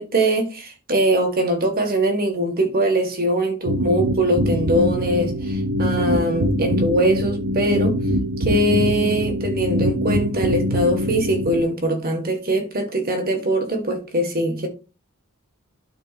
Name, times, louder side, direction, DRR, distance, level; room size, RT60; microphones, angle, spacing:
voice 1, 0.0-8.0 8.4-14.7, right 1 dB, 45° right, 1.6 m, -22 dB
sound 1, 3.7-11.6, equal, 85° right, 1.0 m, -23 dB
12.5 x 4.4 x 2.5 m
head